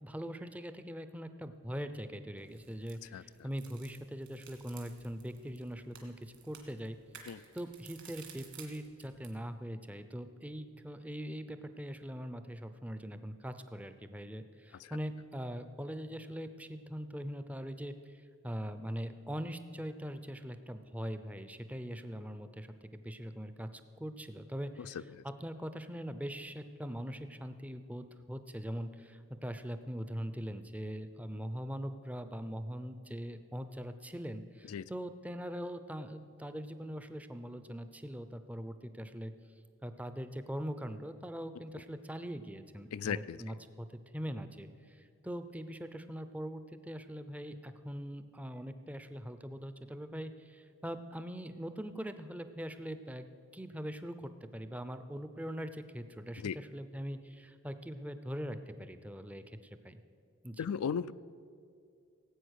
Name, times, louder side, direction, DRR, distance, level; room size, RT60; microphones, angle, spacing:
voice 1, 0.0-7.0 7.5-22.7 22.9-39.3 39.8-43.9 44.1-53.3 53.5-60.0 60.4-60.7, equal, 5° right, 10 dB, 0.5 m, -42 dB
sound 1, 2.4-9.4, right 7 dB, 55° right, 2.1 m, -55 dB
voice 2, 24.8-25.2 34.7-34.9 42.9-43.4 56.4-56.6 60.6-61.1, left 7 dB, 85° left, 16 dB, 0.4 m, -36 dB
17.5 x 8.5 x 6.4 m, 2.3 s
head